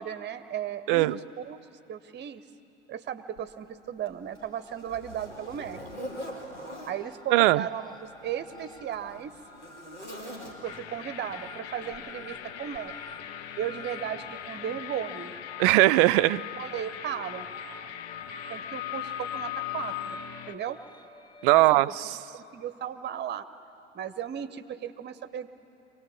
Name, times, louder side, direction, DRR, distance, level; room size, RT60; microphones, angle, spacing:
voice 1, 0.0-1.6 1.9-2.4 2.9-5.8 6.8-9.3 10.6-12.9 13.6-15.4 16.6-17.5 18.5-20.2 20.5-20.8 21.5-21.8 22.3-23.5 23.9-25.5, right 9 dB, 30° right, 12 dB, 1.0 m, -36 dB
voice 2, 0.9-1.2 7.3-7.6 15.6-16.4 21.4-22.2, right 18 dB, 50° right, 16 dB, 0.5 m, -20 dB
Zipper (clothing), 3.4-3.5 4.1-7.0 8.0-10.9 11.9-12.1 12.7-12.8, equal, 90° left, 2.5 m, -43 dB
sound 1, 4.3-4.9 5.2-21.8, left 8 dB, 10° left, 0.8 m, -43 dB
sound 2, 10.6-20.5, left 10 dB, 45° left, 0.8 m, -42 dB
24.5 x 18.0 x 8.5 m, 2.9 s
figure-of-eight pair, 70°, 35 cm